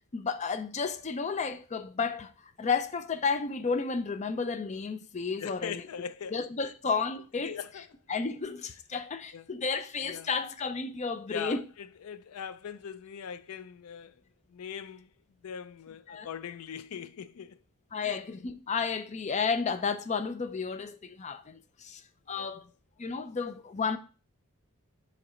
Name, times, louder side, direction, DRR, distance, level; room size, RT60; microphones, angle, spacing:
voice 1, 0.1-2.3 2.6-5.8 6.3-7.5 8.1-11.6 16.1-16.3 17.9-22.0 22.3-22.7 23.0-24.0, left 5 dB, 35° left, 0.5 m, -32 dB
voice 2, 5.4-6.7 7.4-7.9 9.3-9.4 10.0-10.3 11.3-14.2 14.5-15.1 15.4-17.6 18.0-18.2 22.3-22.5, left 7 dB, 85° left, 0.4 m, -41 dB
6.8 x 3.2 x 5.0 m
head